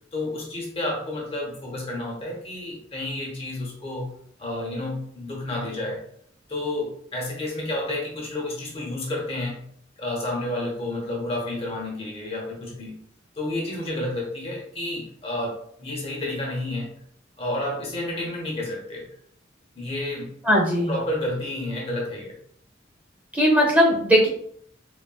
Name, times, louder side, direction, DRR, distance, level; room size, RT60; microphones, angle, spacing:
voice 1, 0.1-4.1 4.4-6.0 6.5-9.6 10.0-13.0 13.4-16.9 17.4-19.1 19.7-20.3 20.9-22.4, left 1 dB, 30° left, -2 dB, 0.8 m, -30 dB
voice 2, 20.4-20.9 23.3-24.3, equal, 10° right, -3 dB, 0.7 m, -18 dB
3.8 x 2.1 x 2.3 m, 0.64 s
head